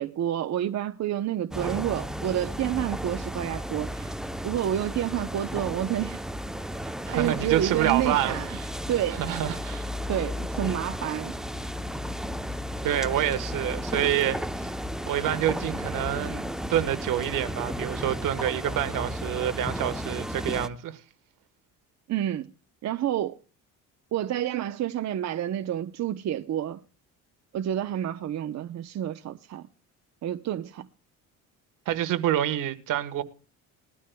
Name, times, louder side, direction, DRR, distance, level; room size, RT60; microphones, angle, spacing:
voice 1, 0.0-4.2 4.4-6.2 7.1-8.5 8.9-9.2 10.1-11.4 22.1-22.5 22.8-23.4 24.1-26.8 27.5-29.7 30.2-30.9, right 11 dB, 55° right, 0.9 m, -29 dB
sound 1, 1.5-20.7, equal, ahead, 0.8 m, -34 dB
voice 2, 7.1-8.7 9.2-9.9 12.8-14.7 15.1-16.4 16.7-21.0 31.9-33.2, right 12 dB, 75° right, 1.5 m, -27 dB
20.5 x 13.0 x 2.3 m
cardioid pair, 100°, 32 cm